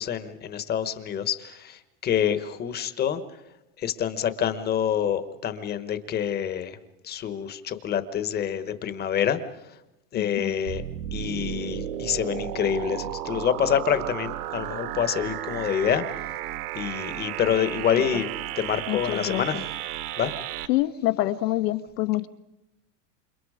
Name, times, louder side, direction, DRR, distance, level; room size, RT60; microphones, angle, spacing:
voice 1, 0.0-3.2 3.8-6.8 7.0-9.4 10.1-10.8 11.1-16.4 16.7-18.3 18.6-19.5 20.2-20.3, left 9 dB, 20° left, 12 dB, 1.2 m, -27 dB
voice 2, 10.2-10.5 18.9-19.6 20.7-22.3, left 16 dB, 80° left, 10 dB, 1.6 m, -26 dB
sound 1, 10.7-20.7, right 12 dB, 70° right, 1.9 m, -33 dB
29.0 x 27.0 x 4.9 m, 0.89 s
supercardioid pair, 165°, 48 cm